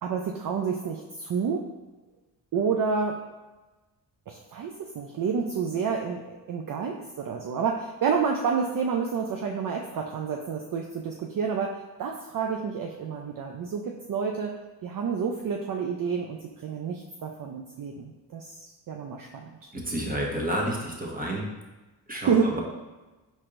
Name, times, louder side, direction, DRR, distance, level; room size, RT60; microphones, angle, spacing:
voice 1, 0.0-1.6 2.5-3.2 4.3-11.7 12.0-14.5 14.8-19.7 22.1-22.5, right 6 dB, 50° right, 2 dB, 0.5 m, -29 dB
voice 2, 19.7-21.5 22.1-22.6, right 1 dB, 20° right, -1 dB, 1.2 m, -30 dB
4.5 x 4.3 x 2.6 m, 1.2 s
supercardioid pair, 55°, 44 cm